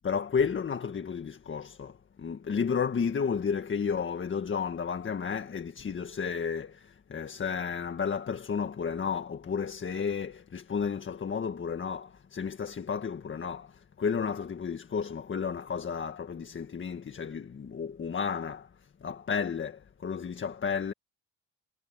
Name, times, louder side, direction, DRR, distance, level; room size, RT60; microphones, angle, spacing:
voice 1, 0.0-20.9, left 6 dB, 40° left, 1.8 m, -32 dB
cardioid pair, 90°, 30 cm